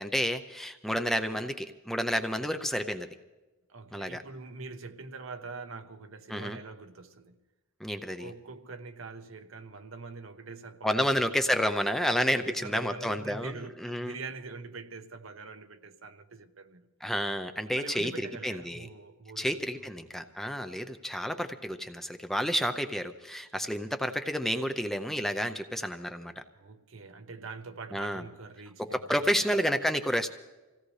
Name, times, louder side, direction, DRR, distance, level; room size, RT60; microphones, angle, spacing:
voice 1, 0.0-3.1 3.9-4.2 6.3-6.6 7.8-8.3 10.8-13.5 13.8-14.2 17.0-18.9 19.4-26.4 27.9-28.2 28.8-30.3, equal, ahead, 0.5 m, -30 dB
voice 2, 3.7-7.3 8.0-11.3 12.3-16.9 17.6-19.6 26.5-29.6, right 4 dB, 65° right, 0.9 m, -44 dB
26.0 x 16.5 x 3.2 m
head